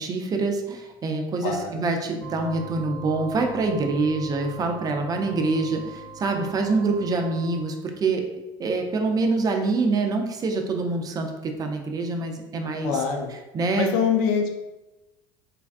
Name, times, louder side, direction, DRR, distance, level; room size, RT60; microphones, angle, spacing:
voice 1, 0.0-8.2 8.6-12.9 13.5-13.9, right 3 dB, 30° right, 4 dB, 0.4 m, -25 dB
voice 2, 1.4-1.9 12.8-13.3 13.7-14.6, left 6 dB, 75° left, 4 dB, 0.4 m, -24 dB
sound 1, 2.2-7.6, right 2 dB, 20° left, 0.6 m, -41 dB
3.3 x 2.2 x 2.4 m, 1.0 s
supercardioid pair, 90°, 12 cm